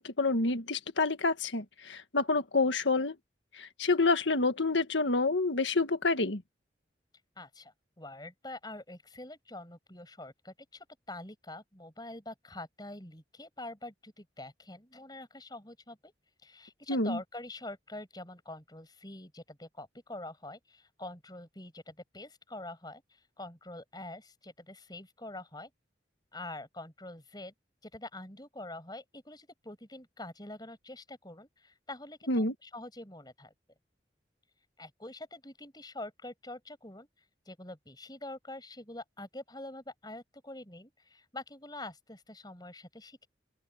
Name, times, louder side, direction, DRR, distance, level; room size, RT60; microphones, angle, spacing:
voice 1, 0.0-3.1 3.5-6.4 16.9-17.2 32.3-32.5, left 3 dB, 90° left, 1.7 m, -28 dB
voice 2, 7.4-16.1 16.4-25.7 26.3-27.5 27.8-33.5 34.8-37.1 37.5-43.3, left 2 dB, 25° left, 6.5 m, -45 dB
open air
head